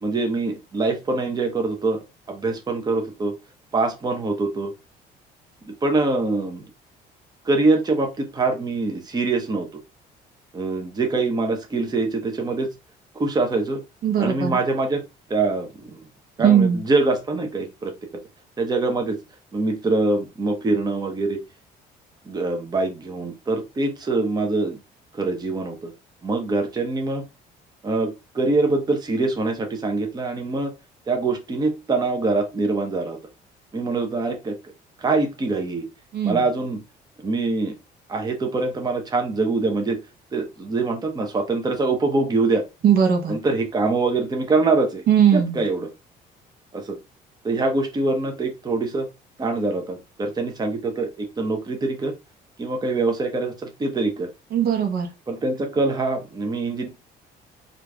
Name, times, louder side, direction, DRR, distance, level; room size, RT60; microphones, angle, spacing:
voice 1, 0.0-2.0 2.3-3.3 3.7-4.7 5.6-6.6 7.4-9.8 10.5-12.7 13.1-13.8 14.2-15.0 15.3-16.0 16.4-17.9 18.6-19.2 19.5-21.4 22.3-24.8 25.1-25.9 26.2-27.2 27.8-30.7 31.1-33.2 33.7-34.5 35.0-35.9 36.2-36.8 37.2-37.8 38.1-40.0 40.3-42.6 43.3-45.0 45.3-45.9 46.7-47.0 47.4-49.1 49.4-52.1 52.6-54.3 55.3-56.9, right 3 dB, 25° right, 0.8 m, -24 dB
voice 2, 14.0-14.5 16.4-16.8 36.1-36.4 42.8-43.3 45.1-45.6 54.5-55.1, right 8 dB, 65° right, 0.9 m, -19 dB
3.0 x 2.6 x 3.4 m
cardioid pair, 110°, 17 cm